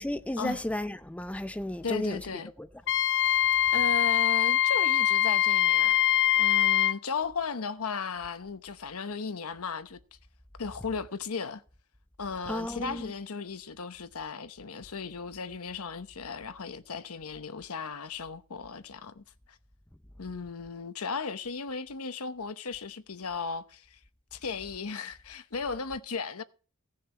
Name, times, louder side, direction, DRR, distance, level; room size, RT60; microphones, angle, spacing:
voice 1, 0.0-2.2 2.6-2.7 12.5-13.1, left 1 dB, 5° left, 0.5 m, -33 dB
voice 2, 1.8-2.5 3.7-6.0 6.4-10.0 10.6-11.6 12.2-19.6 20.2-24.0 24.3-26.4, left 5 dB, 80° left, 0.9 m, -36 dB
Wind instrument woodwind instrument, 2.9-7.0, left 11 dB, 60° left, 0.4 m, -23 dB
17.5 x 6.7 x 4.5 m
head